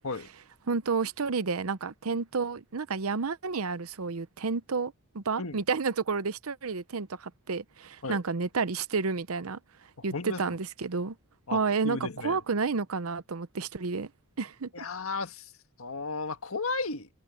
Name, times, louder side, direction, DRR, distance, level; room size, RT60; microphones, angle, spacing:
voice 1, 0.7-9.6 10.0-11.2 11.5-14.1 14.4-14.8, right 4 dB, 90° right, 0.8 m, -30 dB
voice 2, 10.0-10.4 11.5-11.6 11.8-12.4 14.7-15.5 15.8-17.1, left 3 dB, 75° left, 1.8 m, -34 dB
head